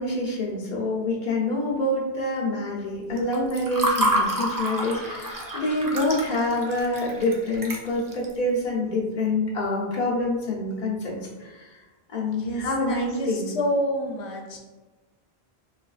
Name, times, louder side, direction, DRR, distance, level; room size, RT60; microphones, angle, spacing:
voice 1, 0.0-11.7 12.1-13.5, left 2 dB, 50° left, -4 dB, 1.0 m, -26 dB
Water / Fill (with liquid), 3.2-8.3, right 1 dB, 35° right, 0.3 m, -28 dB
voice 2, 12.3-14.6, equal, 85° left, 0 dB, 0.9 m, -28 dB
3.7 x 3.3 x 2.4 m, 1.2 s
omnidirectional pair, 1.1 m